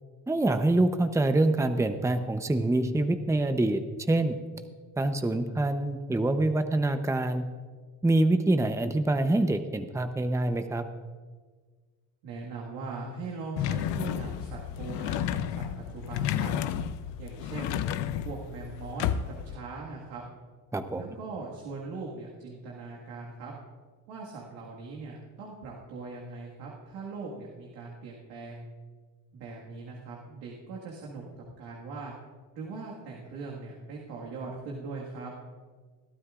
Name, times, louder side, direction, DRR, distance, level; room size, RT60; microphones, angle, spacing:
voice 1, 0.3-3.8 4.1-4.4 5.0-7.4 8.0-10.8 20.7-21.0, right 2 dB, 5° right, 8 dB, 0.8 m, -25 dB
voice 2, 12.2-16.5 17.2-17.9 18.2-20.2 21.0-23.5 24.1-28.7 29.3-31.2 31.6-32.1 32.5-35.3, right 3 dB, 85° right, -3 dB, 1.9 m, -40 dB
sound 1, 13.6-19.6, left 10 dB, 80° left, 0.7 m, -32 dB
21.0 x 12.5 x 2.5 m, 1.5 s
supercardioid pair, 70°, 41 cm